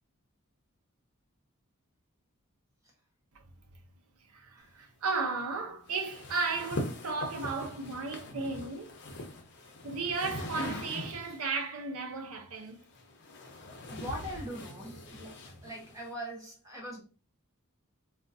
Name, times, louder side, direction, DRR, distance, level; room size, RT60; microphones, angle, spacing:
voice 1, 4.3-9.0 9.8-12.8, right 4 dB, 80° right, 0.7 m, -34 dB
sound 1, 5.9-11.5 12.6-16.1, left 1 dB, 50° left, 0.7 m, -41 dB
voice 2, 13.9-17.0, equal, 15° right, 0.8 m, -41 dB
3.5 x 2.5 x 2.6 m
head